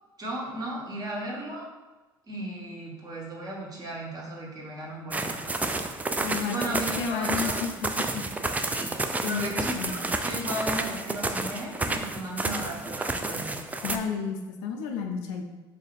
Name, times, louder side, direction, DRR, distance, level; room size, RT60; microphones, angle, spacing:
voice 1, 0.2-1.6 2.3-5.8 6.2-7.6 8.7-9.0 9.3-13.5, right 1 dB, 35° right, -3 dB, 1.3 m, -36 dB
sound 1, 5.1-14.0, right 2 dB, 15° right, 0.3 m, -30 dB
voice 2, 6.2-7.7 8.1-8.2 8.5-8.7 9.2-10.0 13.8-15.5, left 6 dB, 75° left, 3 dB, 0.5 m, -32 dB
3.3 x 2.5 x 4.0 m, 1.2 s
hypercardioid pair, 60°, 11 cm